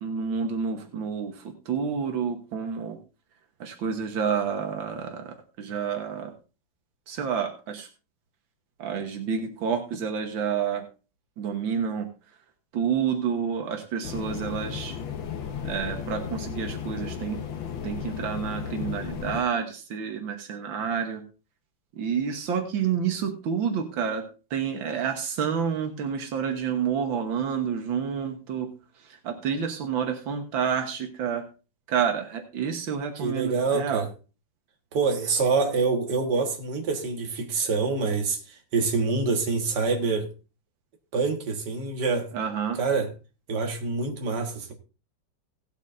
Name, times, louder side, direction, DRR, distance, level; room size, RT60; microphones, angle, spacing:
voice 1, 0.0-3.0 3.6-6.3 7.1-7.9 8.8-10.9 11.4-12.1 12.7-15.0 15.6-17.4 17.8-21.2 22.0-24.2 24.5-28.7 29.0-31.5 31.9-34.0 42.3-42.8, right 7 dB, 85° right, 2.0 m, -29 dB
sound 1, 14.0-19.4, left 7 dB, 85° left, 1.9 m, -34 dB
voice 2, 33.2-34.1 34.9-40.3 41.1-42.3 42.8-43.1 43.5-44.7, right 4 dB, 60° right, 2.2 m, -26 dB
18.0 x 8.2 x 2.6 m
omnidirectional pair, 2.0 m